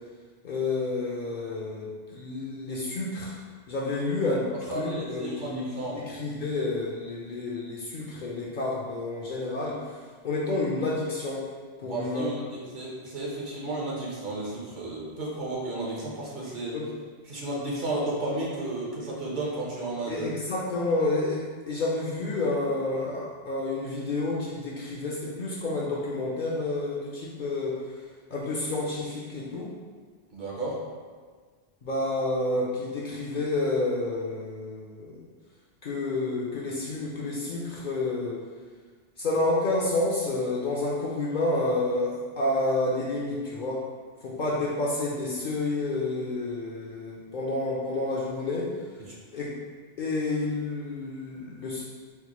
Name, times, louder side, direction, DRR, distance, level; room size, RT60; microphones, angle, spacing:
voice 1, 0.4-3.3 3.7-11.5 11.8-12.3 16.7-16.9 20.1-27.8 28.3-29.7 31.8-35.2 35.8-38.4 39.2-43.9 44.2-48.7 49.3-49.5 50.0-51.8, left 2 dB, 60° left, -4 dB, 0.6 m, -29 dB
voice 2, 4.7-6.0 11.8-16.8 17.3-20.2 30.3-30.8, right 2 dB, 55° right, -4 dB, 0.8 m, -33 dB
4.5 x 2.1 x 2.9 m, 1.5 s
omnidirectional pair, 1.1 m